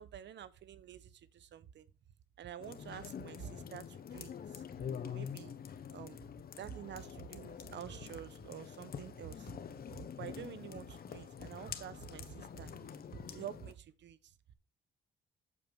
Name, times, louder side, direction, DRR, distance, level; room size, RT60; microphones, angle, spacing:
voice 1, 0.0-1.9 2.4-4.6 5.0-5.5 5.9-6.2 6.6-9.6 9.9-12.8 13.2-14.3, right 9 dB, 65° right, 0.9 m, -48 dB
sound 1, 2.6-13.7, left 8 dB, 50° left, 1.1 m, -46 dB
8.6 x 6.8 x 3.5 m
cardioid pair, 90°, 20 cm